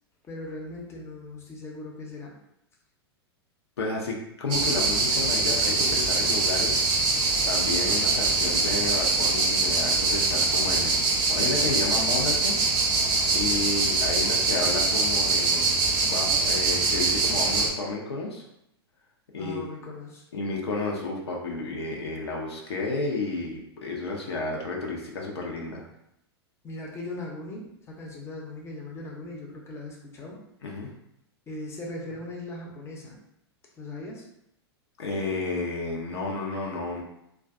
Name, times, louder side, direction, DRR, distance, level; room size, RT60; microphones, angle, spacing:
voice 1, 0.2-2.3 19.4-20.2 26.6-30.4 31.5-33.2 33.8-34.3, left 2 dB, 20° left, -1 dB, 0.6 m, -39 dB
voice 2, 3.8-6.8 7.4-11.0 11.3-12.6 13.3-15.7 16.0-18.4 19.3-19.7 20.3-25.9 30.6-30.9 35.0-37.0, left 3 dB, 75° left, -1 dB, 0.6 m, -31 dB
sound 1, 4.5-17.7, right 3 dB, 35° right, 0.6 m, -24 dB
2.5 x 2.2 x 2.4 m, 0.79 s
hypercardioid pair, 100°, 14 cm